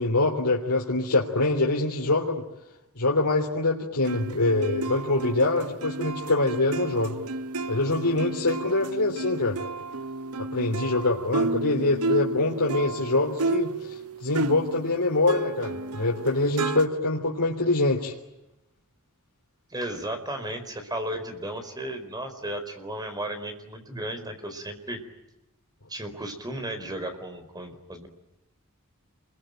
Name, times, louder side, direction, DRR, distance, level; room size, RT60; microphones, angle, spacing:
voice 1, 0.0-2.4 3.0-7.2 7.7-9.6 10.4-18.1, left 2 dB, 90° left, -2 dB, 3.5 m, -24 dB
sound 1, 4.0-15.0 15.3-16.9, right 3 dB, 80° right, 1.0 m, -32 dB
voice 2, 19.7-25.0 25.9-28.1, right 1 dB, 20° right, 7 dB, 4.5 m, -34 dB
29.0 x 22.5 x 9.1 m, 0.94 s
head